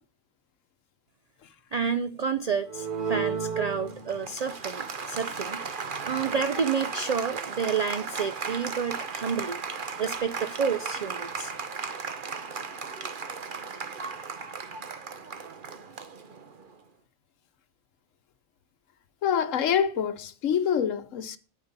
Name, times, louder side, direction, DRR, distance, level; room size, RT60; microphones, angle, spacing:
voice 1, 1.7-5.6 6.0-9.6 10.0-11.5, right 6 dB, 70° right, 0.3 m, -29 dB
Applause, 2.7-16.7, right 5 dB, 45° right, 1.0 m, -35 dB
voice 2, 19.2-21.4, left 8 dB, 75° left, 1.2 m, -26 dB
10.5 x 8.8 x 4.0 m
omnidirectional pair, 1.3 m